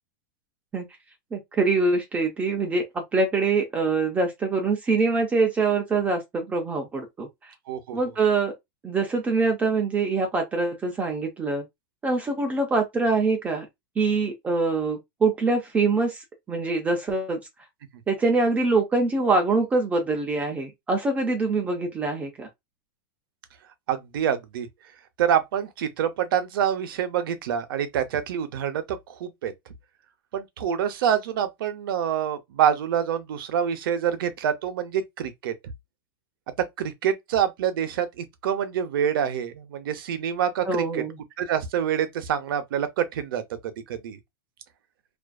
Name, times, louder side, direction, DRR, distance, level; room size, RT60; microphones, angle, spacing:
voice 1, 1.3-7.3 7.9-8.5 8.8-11.6 12.0-13.7 14.0-16.2 16.5-17.4 18.1-22.5 40.7-41.2, right 3 dB, 10° right, 0.4 m, -24 dB
voice 2, 7.7-8.0 23.9-24.7 25.2-29.5 30.3-35.5 36.8-41.0 41.4-44.2, right 9 dB, 70° right, 0.7 m, -26 dB
2.5 x 2.4 x 2.2 m
supercardioid pair, 160°, 12 cm